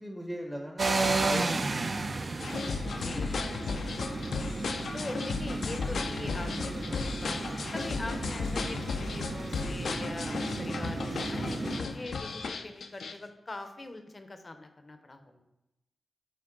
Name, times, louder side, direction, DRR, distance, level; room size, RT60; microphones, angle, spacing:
voice 1, 0.0-1.7 2.1-2.3 2.8-3.6 15.3-15.4, equal, 5° right, 1 dB, 0.7 m, -41 dB
sound 1, 0.8-11.8, right 3 dB, 40° right, 0.4 m, -34 dB
sound 2, 2.4-13.1, left 4 dB, 85° left, 0.5 m, -35 dB
voice 2, 2.9-3.5 4.9-7.4 7.7-15.3, left 2 dB, 30° left, 7 dB, 0.6 m, -42 dB
9.0 x 3.4 x 3.8 m, 0.92 s
wide cardioid pair, 135°, 0 cm